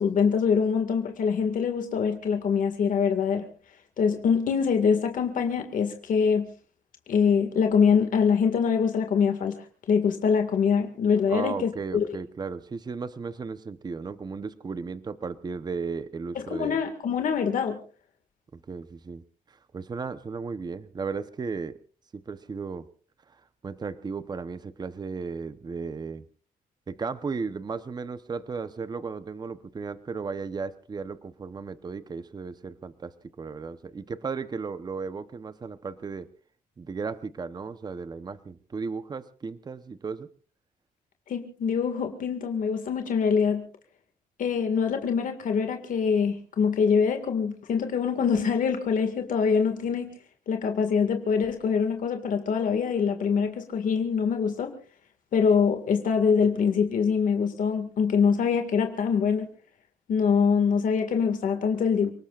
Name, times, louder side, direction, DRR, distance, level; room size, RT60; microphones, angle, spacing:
voice 1, 0.0-3.5 4.0-6.5 7.1-12.2 16.4-17.8 41.3-43.7 44.4-50.1 50.5-54.7 55.3-59.5 60.1-62.1, left 6 dB, 65° left, 6 dB, 2.0 m, -24 dB
voice 2, 11.3-16.8 18.5-21.8 22.1-22.9 23.3-26.3 26.9-36.3 36.8-40.3, right 5 dB, 30° right, 12 dB, 0.9 m, -35 dB
29.5 x 19.0 x 2.5 m, 0.40 s
cardioid pair, 130°, 15 cm